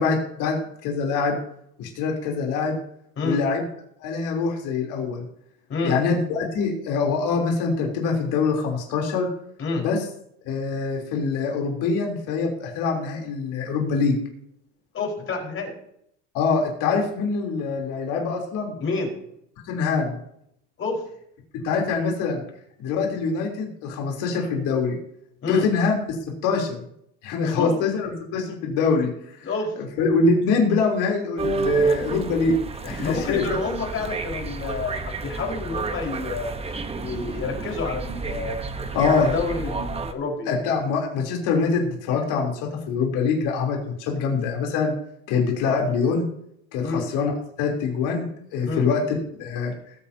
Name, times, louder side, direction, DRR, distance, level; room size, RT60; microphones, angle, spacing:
voice 1, 0.0-1.4 1.8-2.8 3.2-3.6 4.0-5.2 5.8-9.3 9.7-10.0 10.5-14.2 16.3-18.7 19.7-20.1 21.6-22.4 22.8-25.0 25.5-26.0 26.4-26.8 27.2-29.1 29.8-32.6 32.8-33.6 38.9-39.3 40.5-44.9 45.3-46.3 46.7-47.3 47.6-49.0 49.4-49.7, left 4 dB, 70° left, 0 dB, 3.6 m, -24 dB
voice 2, 14.9-15.7 18.8-19.1 20.8-21.0 25.4-25.7 27.4-27.8 29.4-29.7 33.0-35.0 35.2-36.5 37.0-38.6 39.2-40.4 46.8-47.1 48.7-48.9, left 4 dB, 40° left, 0 dB, 4.9 m, -28 dB
sound 1, 31.4-40.1, right 3 dB, 20° right, 1.1 m, -29 dB
20.5 x 8.6 x 2.9 m, 0.72 s
supercardioid pair, 115°, 32 cm